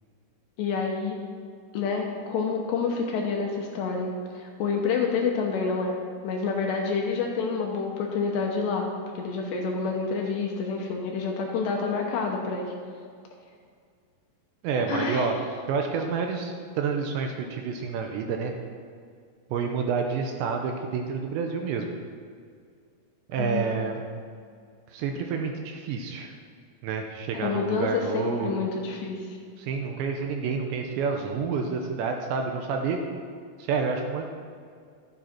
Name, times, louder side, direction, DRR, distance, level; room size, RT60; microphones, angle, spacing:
voice 1, 0.6-1.2 1.7-6.0 6.2-12.7 14.9-15.3 23.4-23.7 27.3-29.4, left 5 dB, 75° left, 0 dB, 2.9 m, -28 dB
voice 2, 14.6-15.4 15.7-18.5 19.5-21.9 23.3-24.0 24.9-26.3 26.8-28.7 29.6-33.0 33.6-34.3, right 5 dB, 80° right, 3 dB, 2.8 m, -29 dB
12.5 x 9.5 x 4.5 m, 2.1 s
omnidirectional pair, 5.6 m